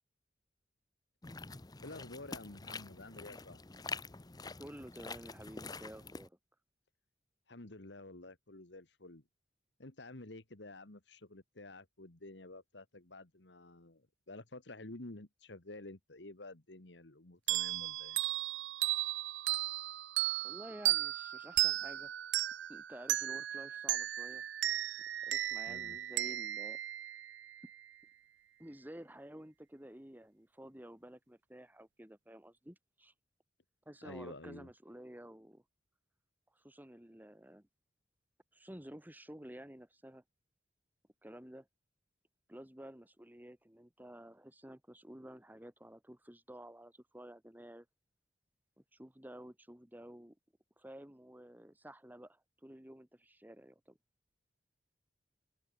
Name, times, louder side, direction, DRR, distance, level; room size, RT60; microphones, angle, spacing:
sound 1, 1.2-6.3, left 4 dB, 20° left, 0.8 m, -46 dB
voice 1, 1.8-3.6 7.5-9.2 9.8-18.2 25.7-26.0 34.0-34.7, left 2 dB, 65° left, 2.1 m, -50 dB
voice 2, 4.6-6.4 20.4-22.1 22.7-24.5 25.2-26.8 28.6-33.1 33.9-35.6 36.5-37.7 38.5-40.2 41.2-41.7 42.5-47.9 48.9-50.4 50.8-54.0, right 1 dB, 10° right, 1.8 m, -52 dB
sound 2, 17.5-27.8, right 15 dB, 70° right, 0.4 m, -35 dB
open air
head